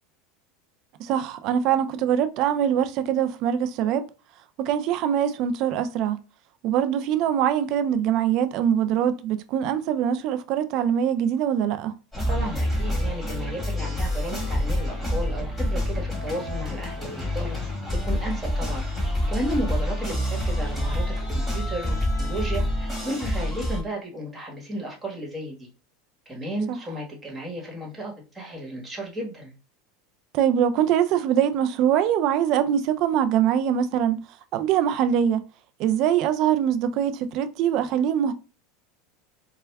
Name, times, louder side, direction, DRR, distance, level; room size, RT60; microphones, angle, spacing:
voice 1, 1.0-4.1 4.6-6.2 6.6-12.0 26.7-26.8 30.3-34.2 34.5-35.5 35.8-38.3, right 9 dB, 55° right, 0.4 m, -23 dB
sound 1, 12.1-23.8, left 1 dB, 5° left, 1.8 m, -27 dB
voice 2, 12.3-17.6 17.9-18.8 19.3-25.7 26.3-29.5, right 1 dB, 15° right, 1.3 m, -33 dB
4.3 x 2.2 x 2.2 m
supercardioid pair, 115°, 0 cm